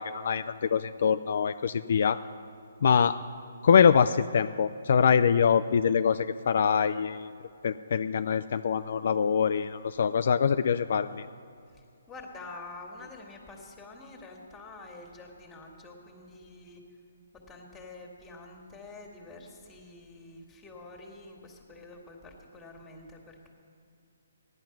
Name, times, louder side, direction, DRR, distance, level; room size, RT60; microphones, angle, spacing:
voice 1, 0.0-2.2 2.8-3.2 3.6-7.3 7.6-11.2, left 7 dB, 60° left, 10 dB, 0.4 m, -24 dB
voice 2, 11.7-16.8 17.5-23.5, left 2 dB, 10° left, 1 dB, 1.9 m, -47 dB
16.0 x 10.5 x 5.9 m, 2.3 s
hypercardioid pair, 155°, 0 cm